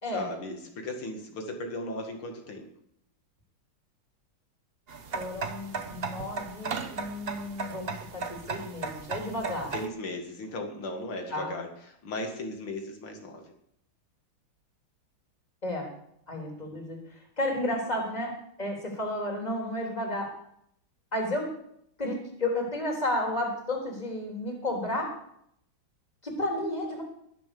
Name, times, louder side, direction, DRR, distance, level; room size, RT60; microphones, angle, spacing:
voice 1, 0.1-2.7 9.7-13.4, left 1 dB, 85° left, 3 dB, 2.8 m, -36 dB
sound 1, 4.9-9.9, right 5 dB, 40° right, 0.9 m, -36 dB
voice 2, 5.1-9.7 11.3-11.5 15.6-15.9 16.3-17.0 17.4-20.3 21.1-21.5 22.0-25.1 26.2-27.0, left 1 dB, 20° left, 0 dB, 3.6 m, -32 dB
21.5 x 7.3 x 6.9 m, 0.74 s
omnidirectional pair, 2.3 m